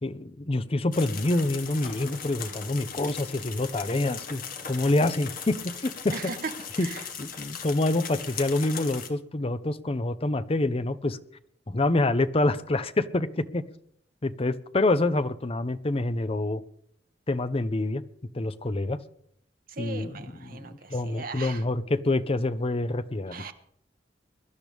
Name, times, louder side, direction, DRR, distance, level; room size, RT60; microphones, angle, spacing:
voice 1, 0.0-4.4 4.7-6.1 6.8-6.9 7.2-11.2 11.7-13.6 14.2-16.6 17.3-18.0 18.3-19.0 19.8-23.5, left 2 dB, 35° left, 13 dB, 0.7 m, -27 dB
sound 1, 0.9-9.1, left 6 dB, 55° left, 1.5 m, -39 dB
voice 2, 6.1-6.5 6.8-7.1 19.7-21.6 23.3-23.5, right 4 dB, 55° right, 7 dB, 1.2 m, -38 dB
22.5 x 11.5 x 3.5 m, 0.68 s
head